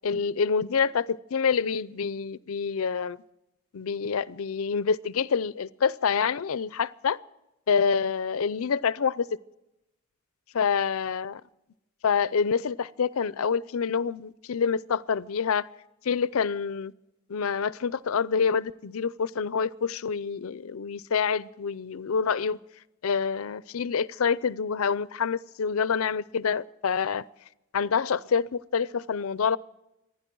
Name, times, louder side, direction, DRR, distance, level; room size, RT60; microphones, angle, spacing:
voice 1, 0.0-3.2 3.7-7.2 7.7-9.3 10.5-11.4 12.0-15.7 16.0-16.9 17.3-22.6 23.0-27.2 27.7-29.6, left 6 dB, 80° left, 0.5 m, -27 dB
26.5 x 10.5 x 4.6 m
head